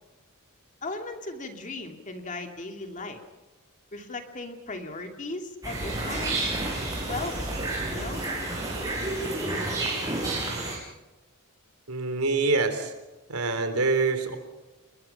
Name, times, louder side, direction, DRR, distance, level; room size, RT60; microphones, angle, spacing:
voice 1, 0.8-3.2 3.9-6.5 7.0-8.2, left 2 dB, 35° left, 4 dB, 2.6 m, -37 dB
sound 1, 5.6-10.8, right 2 dB, 15° right, 6.5 m, -30 dB
voice 2, 11.9-12.9 13.3-14.4, right 3 dB, 85° right, 8 dB, 3.6 m, -25 dB
29.5 x 21.5 x 5.8 m, 1.1 s
head